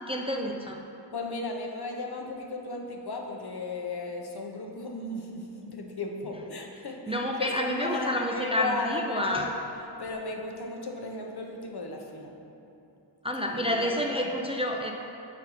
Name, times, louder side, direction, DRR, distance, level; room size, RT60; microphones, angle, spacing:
voice 1, 0.1-0.8 7.1-9.5 13.2-14.9, left 1 dB, 15° right, 1 dB, 0.4 m, -29 dB
voice 2, 1.1-9.5 10.0-12.3 13.5-14.3, left 3 dB, 60° left, 1 dB, 0.8 m, -35 dB
6.8 x 4.2 x 4.1 m, 2.9 s
wide cardioid pair, 55°, 43 cm